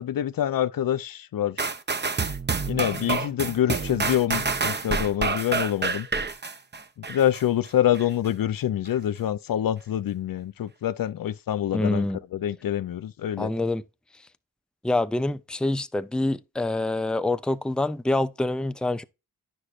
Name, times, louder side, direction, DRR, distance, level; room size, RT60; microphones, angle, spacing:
voice 1, 0.0-1.6 2.7-6.1 7.0-12.0 12.3-13.5, left 11 dB, 65° left, 0.5 m, -26 dB
sound 1, 1.6-7.4 7.9-8.0, right 4 dB, 30° right, 0.8 m, -28 dB
voice 2, 11.7-12.2 13.4-13.8 14.8-19.0, left 2 dB, ahead, 0.5 m, -26 dB
9.7 x 6.3 x 2.5 m
cardioid pair, 40°, 37 cm